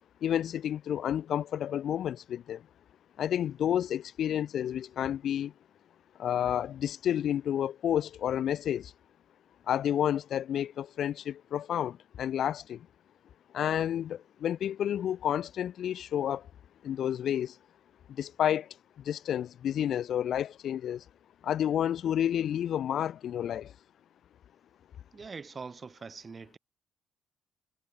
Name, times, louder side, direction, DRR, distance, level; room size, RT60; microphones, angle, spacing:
voice 1, 0.2-2.6 3.2-5.5 6.2-8.9 9.7-12.9 13.5-16.5 16.8-17.6 18.1-18.7 19.0-21.0 21.4-23.7, left 10 dB, 70° left, 2.6 m, -30 dB
voice 2, 25.1-26.6, right 5 dB, 35° right, 5.4 m, -43 dB
cardioid pair, 90°, 0 cm